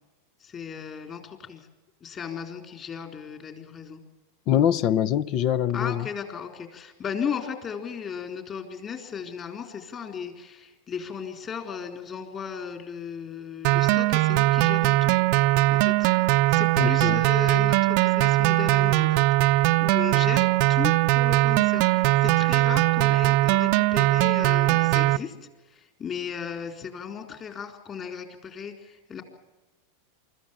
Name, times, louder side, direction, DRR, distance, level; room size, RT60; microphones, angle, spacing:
voice 1, 0.4-1.6 2.0-4.0 5.7-15.1 15.7-16.1 16.5-25.3 25.7-29.2, left 7 dB, 30° left, 4.1 m, -36 dB
voice 2, 4.5-6.1 16.8-17.2, left 10 dB, 50° left, 0.7 m, -24 dB
sound 1, 13.6-25.2, right 18 dB, 55° right, 0.7 m, -21 dB
25.0 x 14.5 x 8.8 m
hypercardioid pair, 110°, 0 cm